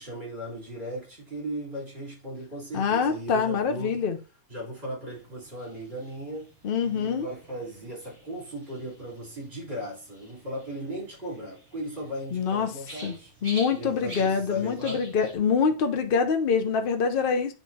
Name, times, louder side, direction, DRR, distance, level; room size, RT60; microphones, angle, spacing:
voice 1, 0.0-4.0 4.5-6.5 6.8-13.3 13.7-15.0, equal, 40° right, 3.9 m, -37 dB
voice 2, 2.7-4.2 6.6-7.3 12.3-12.7 13.0-13.1 13.4-17.5, left 6 dB, 45° left, 0.8 m, -25 dB
sound 1, 5.1-15.4, right 1 dB, 20° right, 2.7 m, -48 dB
9.5 x 4.5 x 2.8 m
omnidirectional pair, 1.5 m